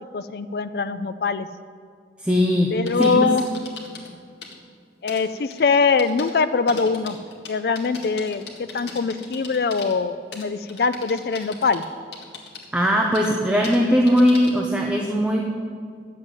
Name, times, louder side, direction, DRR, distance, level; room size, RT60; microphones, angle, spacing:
voice 1, 0.0-1.5 2.7-3.4 5.0-7.2 7.5-11.8, left 4 dB, 60° left, 11 dB, 0.4 m, -22 dB
voice 2, 2.2-3.3 12.7-15.4, equal, 5° right, 0 dB, 0.8 m, -19 dB
sound 1, 2.6-4.1 4.4-4.5 5.1-5.2 5.5-5.6 6.0-6.3 6.7-9.9 10.3-11.9 12.1-12.7 13.1-13.3 13.6-13.8 14.1-14.6, left 4 dB, 75° left, 1.8 m, -39 dB
10.5 x 7.6 x 8.0 m, 2.2 s
head